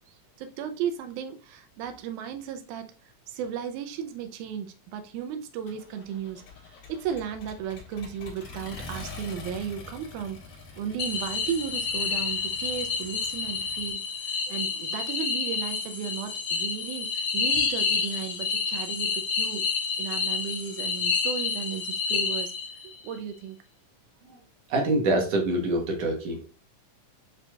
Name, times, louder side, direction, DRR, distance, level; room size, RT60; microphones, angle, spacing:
voice 1, 0.1-2.9 3.3-10.4 10.8-19.7 20.0-22.6 22.8-23.6, right 8 dB, 80° right, 2.1 m, -35 dB
Accelerating revving vroom, 5.7-13.9, left 4 dB, 55° left, 2.1 m, -45 dB
sound 1, 11.0-22.9, left 5 dB, 80° left, 1.1 m, -29 dB
voice 2, 24.7-26.4, right 1 dB, 65° right, 1.8 m, -25 dB
7.5 x 2.9 x 2.3 m
omnidirectional pair, 3.6 m